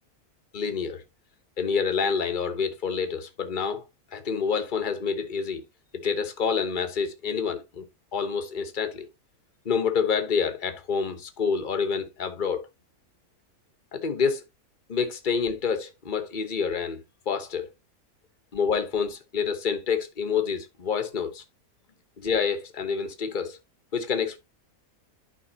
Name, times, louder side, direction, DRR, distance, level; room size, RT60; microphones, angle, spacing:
voice 1, 0.5-1.0 1.6-3.8 4.1-5.6 5.9-7.9 8.1-9.1 9.6-12.7 13.9-14.4 14.9-17.0 17.3-17.7 18.5-21.4 22.2-23.6 23.9-24.4, left 6 dB, 35° left, 1.2 m, -27 dB
11.5 x 5.2 x 2.9 m
omnidirectional pair, 1.6 m